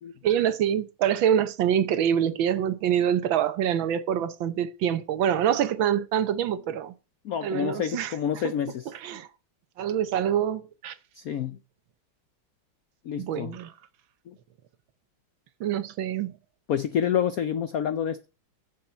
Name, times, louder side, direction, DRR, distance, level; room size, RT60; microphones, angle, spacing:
voice 1, 0.2-6.9 7.4-8.1 8.4-8.5 8.9-9.3 9.8-11.0 13.2-13.7 15.6-16.4, right 9 dB, 70° right, 1.5 m, -25 dB
voice 2, 7.2-8.9 11.1-11.6 13.0-13.5 14.3-14.4 16.7-18.3, left 9 dB, 85° left, 0.7 m, -28 dB
7.1 x 7.1 x 7.9 m
omnidirectional pair, 2.4 m